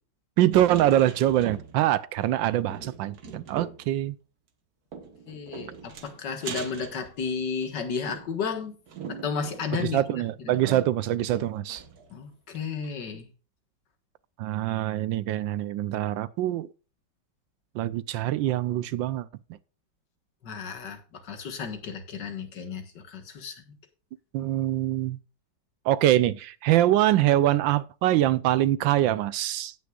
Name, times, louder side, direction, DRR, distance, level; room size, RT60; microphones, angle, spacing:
voice 1, 0.4-4.1 9.7-11.8 14.4-16.7 17.8-19.3 24.3-25.2 25.9-29.7, right 13 dB, 75° right, 1.3 m, -24 dB
sound 1, 0.5-2.0 2.2-2.3 2.7-3.9 4.9-7.6 8.1-12.1 12.5-12.6 12.8-12.9, right 6 dB, 55° right, 1.6 m, -41 dB
voice 2, 5.3-8.7 9.1-10.0 10.4-10.6 12.1-13.3 20.4-22.8 23.1-23.6, left 5 dB, 60° left, 2.1 m, -33 dB
17.5 x 6.4 x 2.4 m
omnidirectional pair, 2.1 m